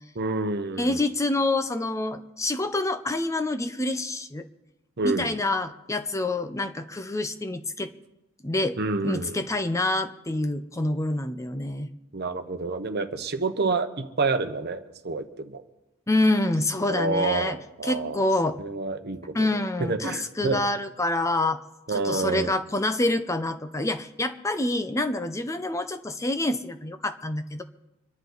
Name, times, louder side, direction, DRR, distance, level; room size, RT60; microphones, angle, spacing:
voice 1, 0.1-1.1 5.0-5.4 8.8-9.4 12.1-15.6 16.9-20.6 21.9-22.5, right 3 dB, 50° right, 8 dB, 1.0 m, -28 dB
voice 2, 0.8-4.4 5.0-7.9 8.4-8.8 9.0-11.9 16.1-17.6 17.8-18.6 19.3-21.6 21.9-27.6, left 2 dB, 15° left, 9 dB, 0.6 m, -27 dB
25.5 x 11.0 x 4.0 m, 0.96 s
head